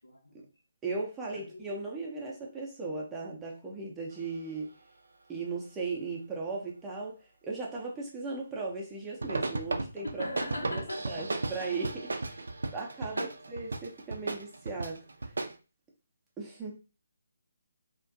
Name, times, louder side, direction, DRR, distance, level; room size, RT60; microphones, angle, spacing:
voice 1, 0.8-4.7 5.3-7.2 7.4-10.3 10.6-12.4 12.7-15.0 16.4-16.7, right 3 dB, 10° right, 0.5 m, -37 dB
voice 2, 1.3-1.7 10.0-11.0 13.1-13.3, left 1 dB, 70° left, 0.8 m, -38 dB
sound 1, 9.1-15.6, right 3 dB, 65° right, 0.3 m, -35 dB
2.5 x 2.2 x 2.5 m
figure-of-eight pair, 145°, 0 cm